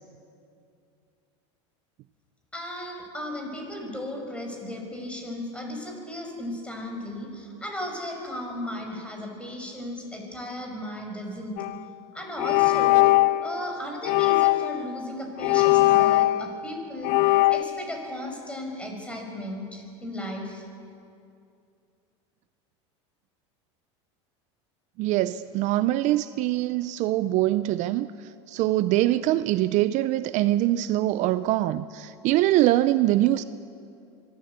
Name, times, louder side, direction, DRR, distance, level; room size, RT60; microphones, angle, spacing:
voice 1, 2.5-11.6 12.1-13.1 13.4-17.2 17.5-20.6, left 1 dB, 5° left, 2 dB, 5.7 m, -35 dB
sound 1, 11.6-11.8 12.4-13.5 14.0-14.8 15.4-16.7 17.0-17.6, left 18 dB, 60° left, 0.7 m, -20 dB
voice 2, 25.0-28.1 28.5-33.4, right 15 dB, 55° right, 14 dB, 0.6 m, -23 dB
23.5 x 13.5 x 8.2 m, 2.5 s
supercardioid pair, 110°, 15 cm